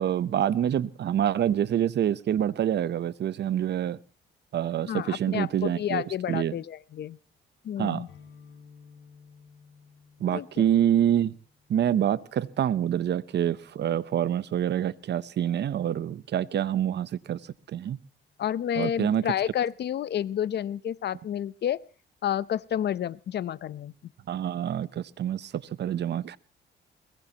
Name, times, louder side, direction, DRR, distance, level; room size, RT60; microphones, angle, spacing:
voice 1, 0.0-4.0 4.5-6.6 7.8-8.0 10.2-11.3 11.7-17.4 17.7-18.0 18.8-19.2 24.3-26.4, right 10 dB, 60° right, 17 dB, 0.8 m, -26 dB
voice 2, 4.8-7.2 7.6-8.1 10.3-10.5 18.4-21.8 22.2-23.9, left 10 dB, 55° left, 18 dB, 0.7 m, -30 dB
sound 1, 8.1-15.7, left 5 dB, 75° left, 6.2 m, -57 dB
22.5 x 20.5 x 2.9 m, 0.36 s
cardioid pair, 90°, 20 cm